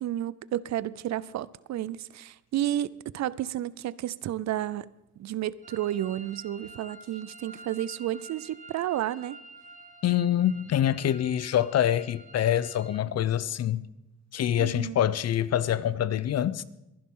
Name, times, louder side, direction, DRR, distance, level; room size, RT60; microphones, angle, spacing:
voice 1, 0.0-4.9 5.2-9.4 14.6-15.0, right 12 dB, 65° right, 0.6 m, -31 dB
sound 1, 5.6-13.0, right 2 dB, 25° right, 1.2 m, -49 dB
voice 2, 10.0-13.9 14.3-16.6, left 11 dB, 55° left, 0.7 m, -25 dB
22.0 x 11.0 x 3.8 m
cardioid pair, 90°, 30 cm